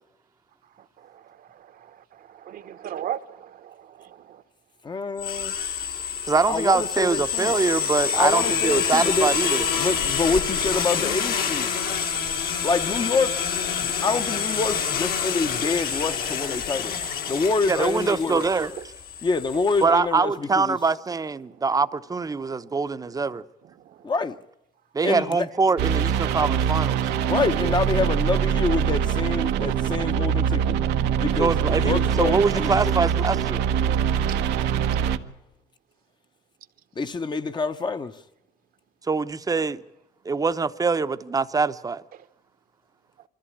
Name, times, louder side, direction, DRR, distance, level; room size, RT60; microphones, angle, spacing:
voice 1, 1.0-4.4 11.7-11.9 23.8-24.0 34.3-34.4 42.1-42.2, right 10 dB, 60° right, 1.1 m, -38 dB
voice 2, 4.8-5.5 6.5-7.5 8.2-9.3 9.8-11.7 12.6-13.4 13.8-16.9 17.3-18.5 19.2-20.8 24.0-24.4 25.0-25.5 27.3-30.8 31.2-32.8 37.0-38.2, left 4 dB, 25° left, 1.0 m, -26 dB
sound 1, 5.2-19.8, left 7 dB, 60° left, 2.2 m, -27 dB
voice 3, 6.3-9.7 17.7-18.7 19.8-23.4 24.9-27.0 31.4-33.6 39.1-39.8 40.2-42.0, right 4 dB, 20° right, 0.8 m, -24 dB
Bowed string instrument, 8.2-14.6, left 1 dB, 90° left, 5.7 m, -36 dB
sound 2, 25.8-35.2, right 8 dB, 85° right, 1.2 m, -23 dB
24.5 x 14.5 x 8.6 m
cardioid pair, 110°, 17 cm